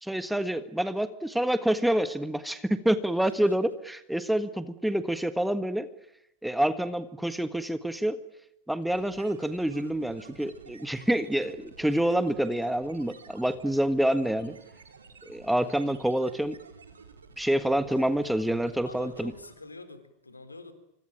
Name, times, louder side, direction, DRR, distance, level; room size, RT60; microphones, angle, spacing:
voice 1, 0.0-5.9 6.4-8.2 8.7-14.6 15.3-16.6 17.4-19.3, right 1 dB, ahead, 11 dB, 1.6 m, -27 dB
voice 2, 3.2-3.5 4.9-5.0 18.9-20.7, left 2 dB, 80° left, 10 dB, 4.1 m, -47 dB
sound 1, 8.8-19.7, right 5 dB, 75° right, 4.0 m, -52 dB
25.5 x 25.0 x 9.1 m, 0.79 s
figure-of-eight pair, 90°, 0 cm